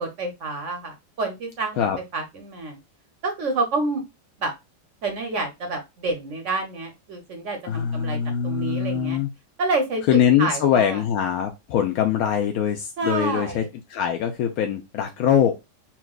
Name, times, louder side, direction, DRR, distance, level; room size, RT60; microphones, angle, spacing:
voice 1, 0.0-1.9 2.1-2.8 3.2-4.0 4.4-4.5 5.0-8.2 8.4-9.2 9.6-10.0 10.4-11.0 13.0-13.7, right 3 dB, 60° right, 5 dB, 0.8 m, -28 dB
voice 2, 7.6-9.3 10.1-13.6 13.9-15.6, left 9 dB, 75° left, 5 dB, 0.8 m, -22 dB
5.8 x 2.4 x 2.3 m, 0.23 s
omnidirectional pair, 2.0 m